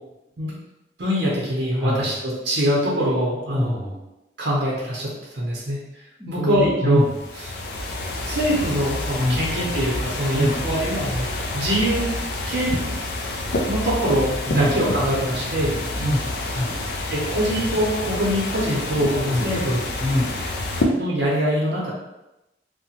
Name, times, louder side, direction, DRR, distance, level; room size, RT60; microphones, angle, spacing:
voice 1, 1.0-3.8 4.4-5.9 6.3-7.1 7.5-7.6 8.2-11.3 11.5-12.1 12.5-12.8 13.7-15.8 17.1-19.8 21.0-21.9, equal, 75° right, -5 dB, 0.6 m, -23 dB
voice 2, 1.8-2.1 3.5-4.0 6.2-7.1 9.1-9.5 10.3-10.7 14.5-14.8 16.0-16.8 19.3-19.6 20.0-20.4, equal, 10° right, -6 dB, 0.6 m, -24 dB
sound 1, 7.0-20.8, left 2 dB, 60° left, 0.4 m, -28 dB
2.8 x 2.1 x 2.7 m, 0.95 s
head